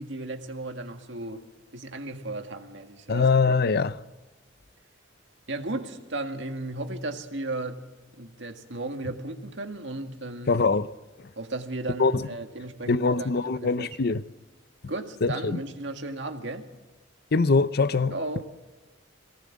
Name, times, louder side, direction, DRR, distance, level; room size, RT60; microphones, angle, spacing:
voice 1, 0.0-1.4 1.7-3.3 5.5-7.9 8.2-10.5 11.4-14.0 14.9-16.7 18.1-18.4, right 2 dB, 65° right, 1.9 m, -35 dB
voice 2, 3.1-4.0 10.5-10.9 12.0-12.3 12.9-14.2 15.2-15.6 17.3-18.1, left 4 dB, 55° left, 0.6 m, -23 dB
23.0 x 18.0 x 7.4 m
head